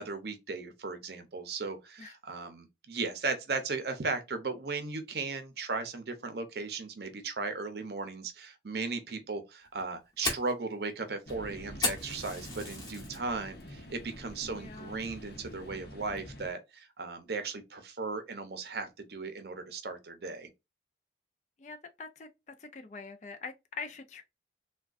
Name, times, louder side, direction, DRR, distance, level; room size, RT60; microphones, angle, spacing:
voice 1, 0.0-20.5, right 4 dB, 60° right, 0.6 m, -36 dB
Fire, 9.6-13.2 13.6-14.0 14.4-14.5 15.0-15.4, left 2 dB, 20° left, 0.9 m, -35 dB
sound 1, 11.3-16.5, equal, 55° left, 0.8 m, -47 dB
voice 2, 14.4-15.0 21.6-22.3 22.6-24.2, left 4 dB, 40° left, 0.4 m, -44 dB
3.5 x 2.2 x 2.4 m
head